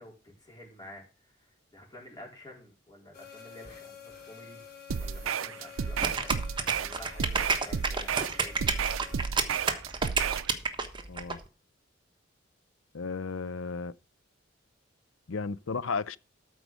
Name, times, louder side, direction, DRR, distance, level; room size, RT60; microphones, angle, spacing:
voice 1, 0.0-4.6 5.0-6.3 6.7-8.7, left 1 dB, 20° left, 4.2 m, -50 dB
sound 1, 3.1-9.3, left 6 dB, 50° left, 3.2 m, -50 dB
sound 2, 4.9-10.5, right 7 dB, 90° right, 0.5 m, -32 dB
sound 3, 6.0-11.3, right 4 dB, 25° right, 1.2 m, -30 dB
voice 2, 11.1-11.4 12.9-13.9 15.3-16.2, left 4 dB, 75° left, 0.6 m, -34 dB
13.5 x 4.8 x 6.3 m
head